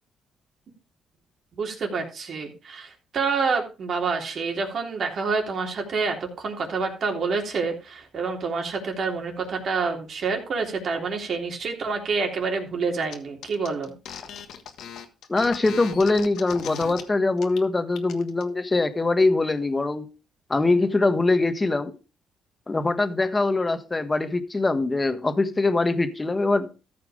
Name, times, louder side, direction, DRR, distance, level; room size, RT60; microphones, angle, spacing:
voice 1, 1.6-13.9, right 4 dB, 55° right, 2 dB, 3.3 m, -28 dB
sound 1, 13.1-13.2 13.4-17.0 17.4-17.6 17.9-18.4, left 8 dB, 75° left, 1.5 m, -38 dB
voice 2, 15.3-20.1 20.5-21.9 22.7-26.7, left 3 dB, 20° left, 9 dB, 1.5 m, -23 dB
14.0 x 5.9 x 5.0 m, 0.33 s
cardioid pair, 90°, 0 cm